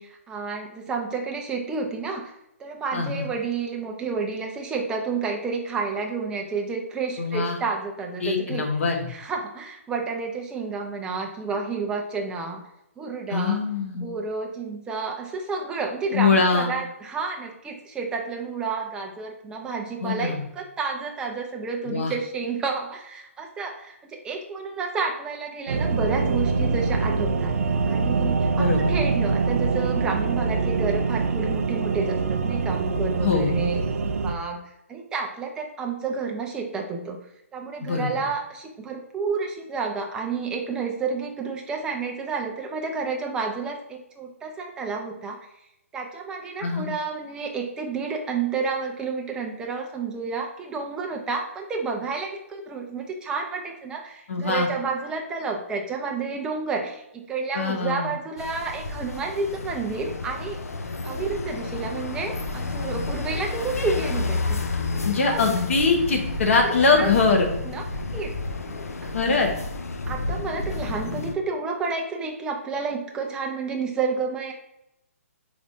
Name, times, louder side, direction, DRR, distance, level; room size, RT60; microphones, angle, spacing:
voice 1, 0.0-2.3 2.6-8.6 9.1-12.6 13.0-13.6 13.9-27.5 27.9-34.6 34.9-37.2 37.5-45.4 45.9-60.6 61.0-64.6 64.9-65.0 65.3-65.4 67.0-67.1 67.6-67.8 68.1-68.3 69.0-69.3 70.1-74.5, right 4 dB, 10° right, 2 dB, 0.5 m, -30 dB
voice 2, 2.9-3.3 7.2-7.6 8.2-9.1 13.3-14.1 16.1-16.8 20.0-20.5 21.9-22.1 28.6-29.0 33.2-33.6 37.8-38.1 46.6-46.9 54.3-54.7 57.5-58.1 65.0-67.5 69.1-69.5, left 4 dB, 60° left, 2 dB, 1.1 m, -23 dB
sound 1, 25.7-34.3, right 4 dB, 75° right, 0.5 m, -24 dB
sound 2, 58.4-71.4, left 3 dB, 90° left, 0.5 m, -31 dB
4.9 x 3.2 x 2.7 m, 0.84 s
hypercardioid pair, 150°, 8 cm